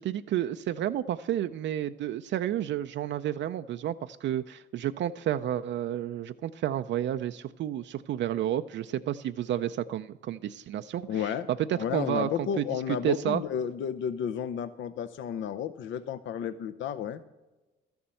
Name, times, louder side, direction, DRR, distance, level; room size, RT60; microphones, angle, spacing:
voice 1, 0.0-11.3 11.7-13.4, right 11 dB, 65° right, 9 dB, 0.4 m, -31 dB
voice 2, 11.1-11.5 11.8-17.2, left 8 dB, 70° left, 11 dB, 0.6 m, -32 dB
12.5 x 7.0 x 7.6 m, 1.1 s
cardioid pair, 90°, 20 cm